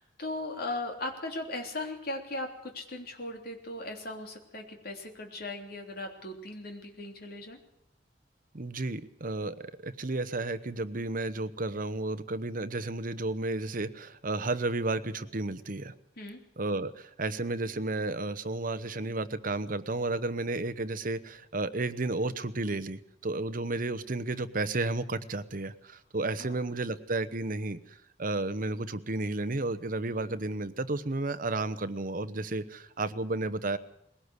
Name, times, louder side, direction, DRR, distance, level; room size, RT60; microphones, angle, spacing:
voice 1, 0.0-7.6 16.2-16.4 26.4-26.5, left 2 dB, 60° left, 3 dB, 3.3 m, -38 dB
voice 2, 8.5-15.9 16.6-33.8, right 2 dB, 50° right, 13 dB, 1.0 m, -32 dB
21.0 x 17.5 x 8.1 m, 0.74 s
head